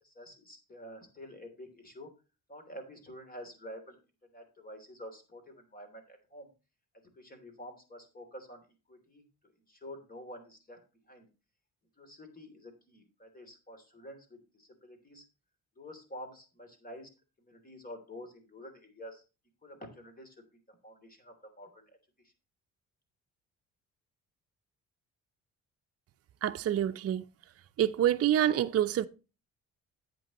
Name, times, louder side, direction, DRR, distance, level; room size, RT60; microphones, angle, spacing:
voice 1, 0.0-2.1 2.5-4.0 4.3-6.5 7.1-8.6 8.9-9.2 9.7-11.3 12.0-15.2 15.8-17.1 17.4-19.2 19.6-21.8 22.2-22.3, equal, 30° left, 3.1 m, -48 dB
voice 2, 26.4-27.2 27.8-29.1, right 11 dB, 50° right, 0.6 m, -27 dB
11.0 x 8.5 x 3.0 m
cardioid pair, 90°, 30 cm